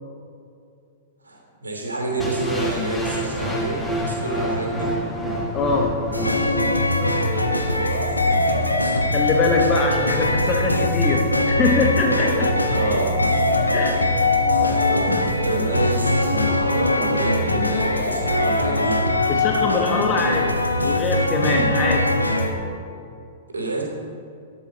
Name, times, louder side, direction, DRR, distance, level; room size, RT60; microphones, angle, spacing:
voice 1, 1.2-4.8 7.8-9.0 12.7-13.3 14.6-19.0 23.5-23.8, right 2 dB, 75° right, -1 dB, 2.8 m, -28 dB
sound 1, 2.2-8.2, equal, 10° left, 1.6 m, -28 dB
voice 2, 5.5-6.0 9.1-12.5 13.7-14.0 19.3-22.1, left 3 dB, 25° left, 2 dB, 1.1 m, -23 dB
sound 2, 6.1-22.5, left 2 dB, 85° left, 1.1 m, -21 dB
13.0 x 9.9 x 4.1 m, 2.4 s
figure-of-eight pair, 105°, 0 cm